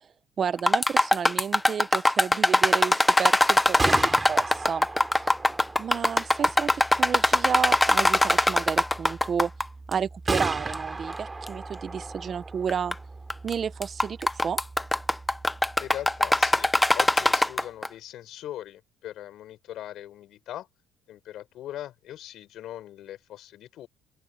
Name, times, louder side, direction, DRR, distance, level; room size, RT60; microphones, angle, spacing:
voice 1, 0.4-4.9 5.8-9.5 9.9-12.9 13.4-14.6, right 7 dB, 45° right, 1.2 m, -31 dB
sound 1, 0.6-9.6 9.9-10.0 10.7-10.8 11.5-11.6 12.7-12.9 13.3-13.5 13.8-17.9, left 1 dB, 10° left, 1.3 m, -21 dB
Gunshot gunfire, 3.5-17.4, right 3 dB, 20° right, 6.8 m, -36 dB
voice 2, 15.8-20.7 21.1-23.9, left 12 dB, 65° left, 6.6 m, -40 dB
open air
supercardioid pair, 90°, 0 cm